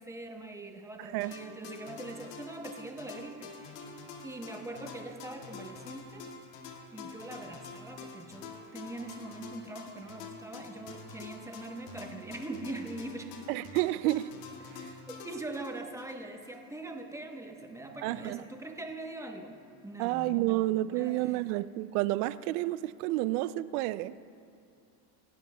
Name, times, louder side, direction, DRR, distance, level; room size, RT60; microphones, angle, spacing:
voice 1, 0.0-3.9 4.2-6.3 6.9-13.3 15.1-19.6 19.8-20.6 20.9-21.4, right 2 dB, 5° right, 1.0 m, -42 dB
voice 2, 1.0-1.3 13.5-14.3 14.7-14.9 18.0-18.4 20.0-24.2, right 17 dB, 65° right, 0.5 m, -30 dB
sound 1, 1.2-16.6, left 4 dB, 75° left, 2.1 m, -47 dB
27.0 x 12.5 x 2.3 m
supercardioid pair, 135°, 48 cm